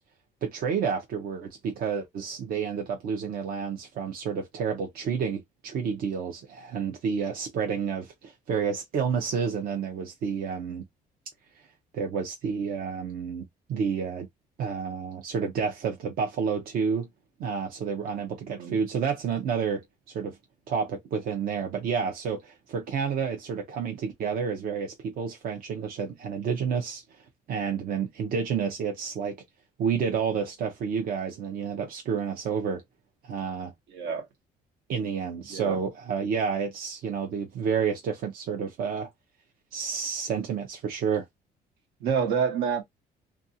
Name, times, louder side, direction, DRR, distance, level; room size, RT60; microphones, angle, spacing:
voice 1, 0.4-10.8 11.9-14.3 14.6-17.1 17.4-20.4 20.7-27.0 27.5-29.3 29.8-32.8 33.2-33.7 34.9-39.1 39.7-41.3, right 6 dB, 60° right, 0.7 m, -30 dB
voice 2, 18.5-18.8 33.9-34.2 35.5-35.8 42.0-42.8, right 6 dB, 85° right, 1.2 m, -27 dB
2.5 x 2.3 x 2.7 m
cardioid pair, 110°, 17 cm